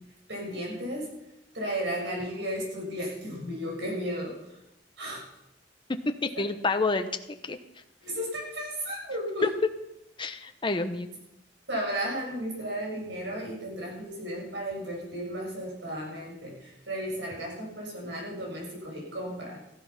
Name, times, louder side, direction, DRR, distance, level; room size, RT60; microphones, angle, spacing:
voice 1, 0.3-1.1 1.5-4.6 5.0-5.2 6.3-6.4 8.0-9.5 11.7-19.7, equal, 80° right, -1 dB, 6.7 m, -34 dB
voice 2, 6.1-7.1 7.4-7.6 10.2-11.1, left 3 dB, 25° left, 7 dB, 0.9 m, -28 dB
15.0 x 11.0 x 5.8 m, 0.84 s
head